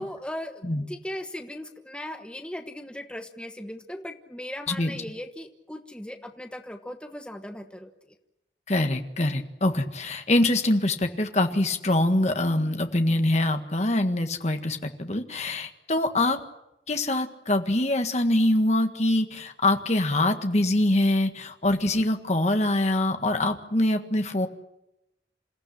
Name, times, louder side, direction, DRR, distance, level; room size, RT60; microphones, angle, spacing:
voice 1, 0.0-7.9, left 1 dB, 5° left, 5 dB, 1.2 m, -38 dB
voice 2, 8.7-16.4 16.9-24.5, left 1 dB, 40° left, 6 dB, 1.7 m, -24 dB
28.0 x 15.0 x 10.0 m, 0.90 s
head